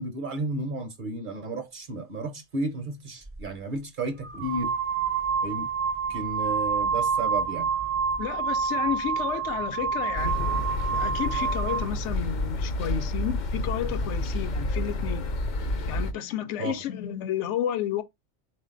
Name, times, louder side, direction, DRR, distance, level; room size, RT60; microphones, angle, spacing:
voice 1, 0.0-4.7 5.4-5.7 6.1-7.7 16.6-16.8, right 2 dB, 50° right, 0.7 m, -33 dB
sound 1, 3.3-3.4 4.2-11.9, right 6 dB, 20° right, 0.4 m, -28 dB
voice 2, 8.2-10.4 10.9-15.3 15.9-18.0, left 10 dB, 80° left, 0.9 m, -31 dB
sound 2, 10.2-16.1, left 2 dB, 55° left, 0.6 m, -29 dB
3.9 x 2.5 x 3.7 m
omnidirectional pair, 1.2 m